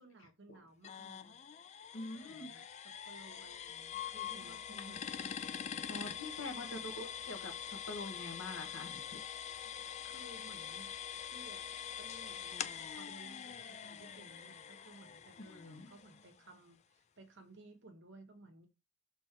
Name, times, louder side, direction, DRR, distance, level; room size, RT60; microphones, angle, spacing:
voice 1, 0.0-1.4 2.2-5.9 6.5-6.8 10.0-10.9 11.2-11.7 12.0-18.7, right 2 dB, 55° right, 1.3 m, -58 dB
sound 1, 0.8-16.5, left 8 dB, 30° left, 0.3 m, -44 dB
voice 2, 1.9-2.6 4.4-4.9 5.9-9.2 15.4-15.9, left 2 dB, 70° left, 1.5 m, -46 dB
6.1 x 4.1 x 3.7 m
head